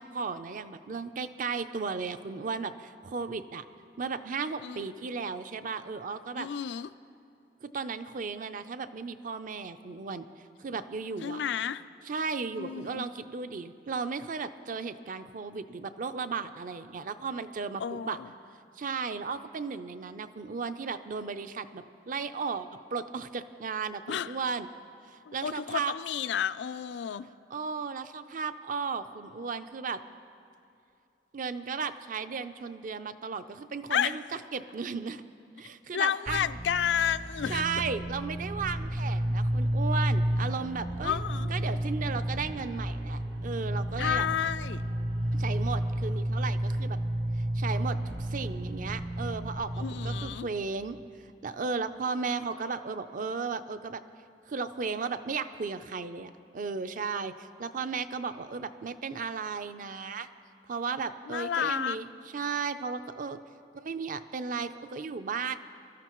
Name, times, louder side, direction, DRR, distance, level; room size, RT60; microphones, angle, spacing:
voice 1, 0.0-3.6 4.0-6.5 7.6-10.3 10.6-11.4 12.1-18.2 18.8-24.7 25.1-25.9 27.5-30.0 31.3-34.2 34.5-35.2 35.6-36.4 37.5-41.2 41.5-44.3 45.3-47.0 47.4-51.0 51.4-54.0 54.5-60.3 60.7-62.1 62.3-63.4 63.7-65.6, right 5 dB, 50° right, 11 dB, 0.5 m, -35 dB
voice 2, 6.4-6.9 11.2-11.8 12.6-13.1 17.8-18.3 24.1-24.4 25.3-27.3 33.9-34.2 35.9-37.7 41.0-41.5 44.0-44.8 49.8-50.5 61.3-62.0, left 8 dB, 75° left, 15 dB, 0.4 m, -31 dB
sound 1, 36.3-50.3, right 1 dB, 70° right, 3.2 m, -31 dB
25.5 x 13.5 x 3.1 m, 2.7 s
head